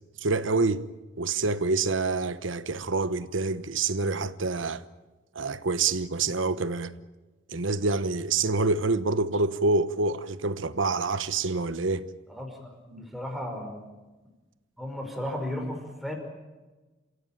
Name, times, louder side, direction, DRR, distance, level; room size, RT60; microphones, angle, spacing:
voice 1, 0.2-0.8 1.2-4.8 5.3-6.9 7.5-12.0, right 3 dB, 80° right, 1.0 m, -27 dB
voice 2, 12.3-13.8 14.8-16.1, left 1 dB, ahead, 5.2 m, -35 dB
28.0 x 16.5 x 8.9 m
head